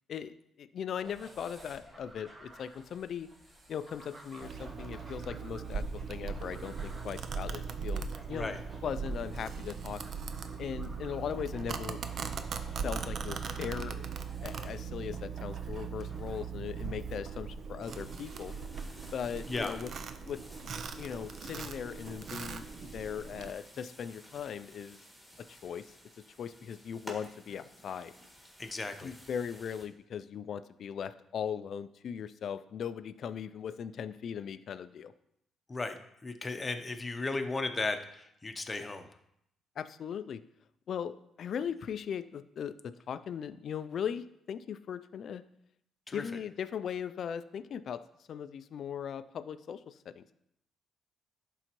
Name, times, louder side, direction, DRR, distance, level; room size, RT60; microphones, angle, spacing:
voice 1, 0.1-3.3 3.7-8.5 8.8-10.0 10.6-12.0 12.8-14.1 14.4-18.5 19.1-19.9 20.2-20.4 21.0-25.0 25.4-25.9 26.4-28.1 29.0-35.1 39.8-40.4 40.9-45.4 46.1-48.0 48.3-50.3, left 8 dB, 60° left, 14 dB, 0.3 m, -39 dB
sound 1, 1.0-16.4, right 1 dB, 35° right, 1.7 m, -54 dB
Domestic sounds home sounds, 4.4-23.5, right 5 dB, 60° right, 0.5 m, -39 dB
sound 2, 17.8-29.8, equal, 5° right, 1.8 m, -54 dB
voice 2, 28.6-29.1 35.7-36.0 36.2-39.1 46.1-46.2, left 3 dB, 25° left, 6 dB, 0.7 m, -35 dB
11.5 x 3.9 x 3.0 m, 0.76 s
cardioid pair, 90°, 0 cm